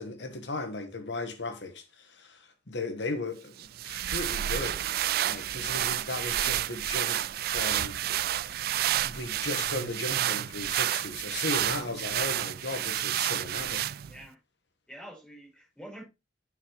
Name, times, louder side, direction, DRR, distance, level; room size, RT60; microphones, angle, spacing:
voice 1, 0.0-4.8 5.2-8.0 9.0-13.9, left 3 dB, 80° left, 1.4 m, -36 dB
sound 1, 3.6-14.2, right 12 dB, 60° right, 0.3 m, -30 dB
voice 2, 5.5-6.0 14.0-14.4 14.9-16.0, right 1 dB, 5° left, 5.1 m, -46 dB
9.9 x 5.7 x 3.2 m
head